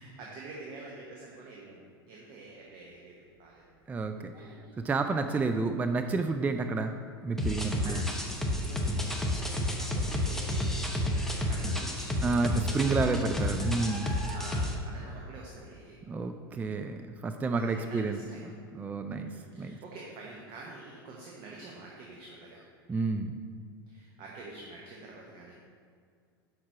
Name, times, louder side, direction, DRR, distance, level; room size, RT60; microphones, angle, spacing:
voice 1, 0.0-3.6 7.8-12.3 12.9-13.5 14.2-16.0 17.5-18.5 19.1-22.6 23.9-25.5, right 3 dB, 45° right, -3 dB, 1.1 m, -47 dB
Child speech kid speaking, 3.2-15.8 16.2-16.6 17.1-17.2, equal, 60° right, 1.5 m, -52 dB
voice 2, 3.9-4.3 4.8-6.9 7.2-8.0 12.2-14.2 16.1-18.2 18.7-19.3 19.6-19.8 22.9-23.4, right 3 dB, 10° right, 7 dB, 0.3 m, -30 dB
sound 1, 7.4-14.7, left 1 dB, 5° left, 0.8 m, -31 dB
5.9 x 4.5 x 5.6 m, 2.1 s
hypercardioid pair, 90°, 13 cm